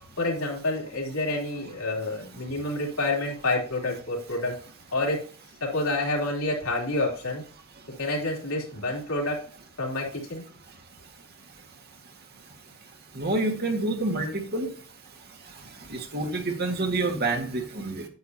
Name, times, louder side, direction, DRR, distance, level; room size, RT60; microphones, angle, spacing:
voice 1, 0.2-4.6 4.9-5.2 5.6-7.4 8.0-9.4 9.8-10.4, left 2 dB, 75° left, -1 dB, 3.1 m, -28 dB
voice 2, 13.1-14.7 15.9-18.1, right 2 dB, 45° right, 3 dB, 1.8 m, -28 dB
9.5 x 9.3 x 2.8 m, 0.41 s
head